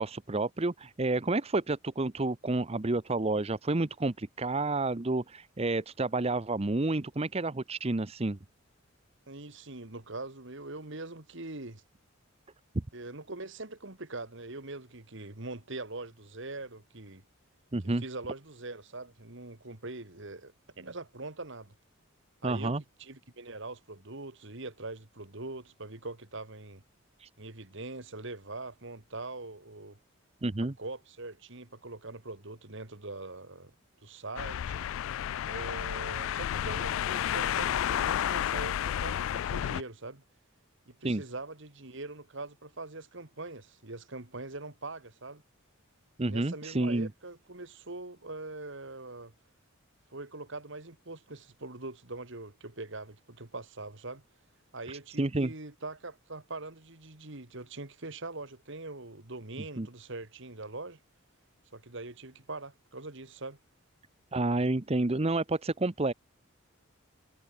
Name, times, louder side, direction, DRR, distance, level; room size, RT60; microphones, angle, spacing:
voice 1, 0.0-8.4 17.7-18.0 22.4-22.8 27.2-27.3 30.4-30.7 41.0-41.2 46.2-47.1 54.9-55.5 59.8-59.9 64.3-66.1, right 2 dB, 30° right, 0.8 m, -30 dB
voice 2, 9.3-11.8 12.9-17.2 18.0-21.7 22.4-26.8 27.4-30.0 30.6-33.7 34.0-34.9 35.4-40.2 40.9-45.4 46.2-49.3 50.1-54.2 54.7-61.0 61.7-63.6, right 2 dB, 60° right, 2.3 m, -42 dB
sound 1, 34.4-39.8, left 10 dB, 70° left, 0.3 m, -31 dB
head